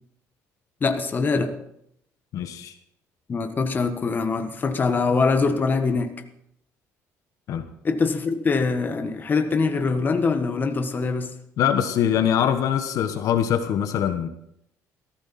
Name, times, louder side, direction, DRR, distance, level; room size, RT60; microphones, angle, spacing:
voice 1, 0.8-1.5 3.3-6.1 7.8-11.3, left 4 dB, 30° left, 7 dB, 1.5 m, -23 dB
voice 2, 2.3-2.7 7.5-7.7 11.6-14.3, left 9 dB, 65° left, 8 dB, 1.3 m, -23 dB
17.5 x 15.0 x 4.3 m, 0.75 s
cardioid pair, 120°, 6 cm